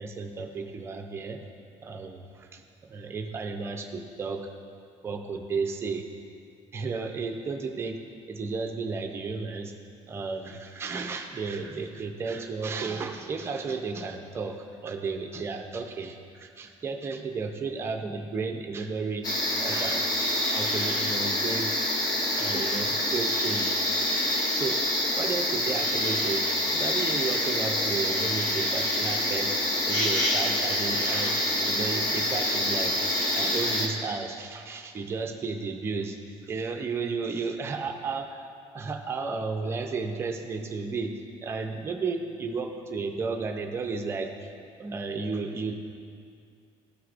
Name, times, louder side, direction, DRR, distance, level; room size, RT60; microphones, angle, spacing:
voice 1, 0.0-1.4 1.8-2.6 2.9-4.5 5.0-6.1 6.7-8.0 8.3-9.7 10.1-19.3 19.6-21.8 22.4-23.7 24.5-26.5 26.7-29.6 29.9-33.0 33.3-36.2 36.5-38.5 38.7-44.5 44.8-45.7, right 4 dB, 20° right, 4 dB, 0.5 m, -33 dB
sound 1, 19.2-33.9, left 1 dB, 30° left, 0.9 m, -26 dB
13.5 x 4.6 x 2.5 m, 2.3 s
cardioid pair, 175°, 12 cm